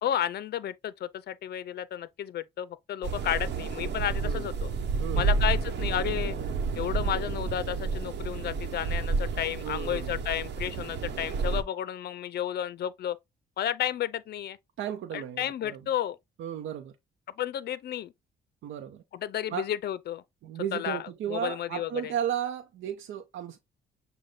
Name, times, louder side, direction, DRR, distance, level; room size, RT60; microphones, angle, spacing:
voice 1, 0.0-4.7 5.2-6.4 6.8-13.2 13.6-14.6 15.1-16.2 17.4-18.1 19.1-20.2 20.7-22.1, left 11 dB, 55° left, 0.5 m, -32 dB
sound 1, 3.0-11.6, right 4 dB, 60° right, 1.0 m, -30 dB
voice 2, 5.0-5.4 9.6-10.2 14.8-15.8 16.4-16.9 18.6-19.0 19.5-19.6 20.4-23.6, right 10 dB, 75° right, 0.7 m, -34 dB
6.5 x 2.2 x 3.7 m
cardioid pair, 90°, 20 cm